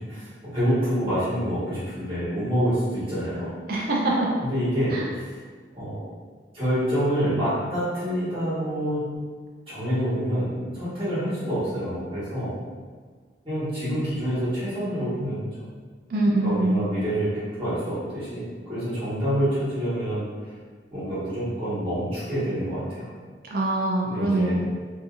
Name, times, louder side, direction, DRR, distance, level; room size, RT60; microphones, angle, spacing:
voice 1, 0.0-3.5 4.4-5.3 5.7-6.0 6.5-9.0 9.7-12.5 13.4-15.7 16.4-20.5 20.9-23.1 24.0-24.6, equal, 30° right, -13 dB, 1.4 m, -27 dB
voice 2, 3.7-4.3 4.9-5.0 16.1-16.8 23.5-24.6, right 2 dB, 55° right, -3 dB, 0.4 m, -23 dB
2.7 x 2.6 x 2.5 m, 1.5 s
head